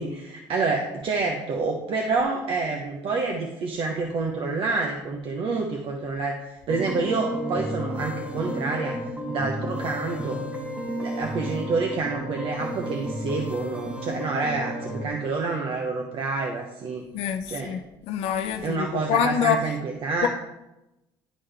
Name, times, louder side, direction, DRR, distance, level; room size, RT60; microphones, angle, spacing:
voice 1, 0.0-9.0 9.3-10.4 11.0-17.0 17.5-17.7 18.6-20.3, right 4 dB, 60° right, 2 dB, 0.8 m, -28 dB
sound 1, 6.7-15.1, equal, 10° right, 1.2 m, -32 dB
voice 2, 17.1-17.8 18.1-19.6 20.2-20.3, left 8 dB, 75° left, 7 dB, 0.5 m, -25 dB
11.0 x 3.7 x 3.4 m, 0.95 s
cardioid pair, 100°, 10 cm